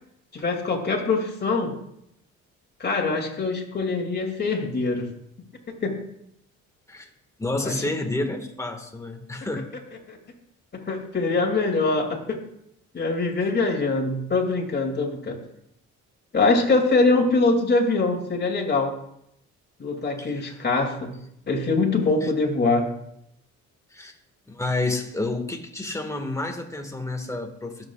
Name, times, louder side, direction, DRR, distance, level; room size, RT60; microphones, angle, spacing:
voice 1, 0.3-1.7 2.8-5.1 5.8-6.0 7.6-7.7 10.1-10.2 10.7-12.2 12.9-15.4 16.3-18.9 19.8-21.1 21.5-22.9, left 3 dB, 35° left, 2.5 m, -23 dB
voice 2, 7.4-9.7 20.2-20.6 22.2-22.3 23.9-24.2 24.5-27.8, left 2 dB, 10° left, 1.6 m, -30 dB
22.0 x 7.8 x 2.4 m
cardioid pair, 90°, 30 cm